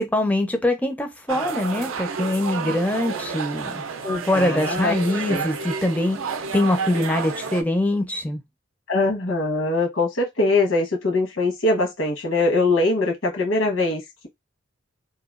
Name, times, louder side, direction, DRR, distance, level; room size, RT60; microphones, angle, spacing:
voice 1, 0.0-3.7 4.2-6.2 6.5-8.4, left 1 dB, 5° left, 0.4 m, -23 dB
sound 1, 1.3-7.6, right 5 dB, 80° right, 0.5 m, -30 dB
voice 2, 4.0-4.9 5.3-5.4 8.9-14.3, left 2 dB, 85° left, 1.2 m, -22 dB
2.9 x 2.2 x 2.4 m
head